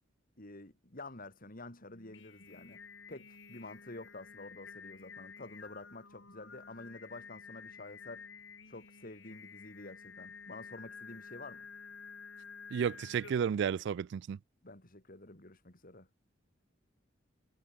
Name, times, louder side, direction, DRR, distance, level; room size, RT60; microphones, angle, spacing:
voice 1, 0.4-2.8 3.1-8.3 8.7-11.7 14.6-16.1, left 2 dB, 45° left, 3.8 m, -49 dB
Singing, 1.9-13.7, left 5 dB, 70° left, 6.6 m, -51 dB
voice 2, 12.7-14.4, right 7 dB, 60° right, 0.3 m, -32 dB
head